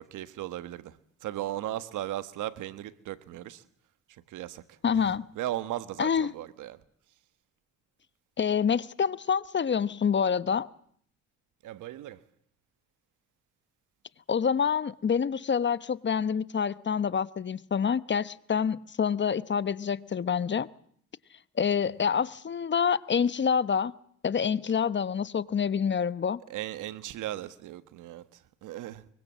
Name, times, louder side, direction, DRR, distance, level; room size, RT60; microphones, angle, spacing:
voice 1, 0.0-3.6 4.1-6.8 11.6-12.2 22.0-22.1 26.5-29.1, right 13 dB, 85° right, 1.5 m, -37 dB
voice 2, 4.8-5.3 6.0-6.3 8.4-10.7 14.3-20.7 21.6-23.9 24.2-26.4, left 7 dB, 40° left, 1.0 m, -27 dB
24.0 x 23.5 x 7.5 m
cardioid pair, 90°, 30 cm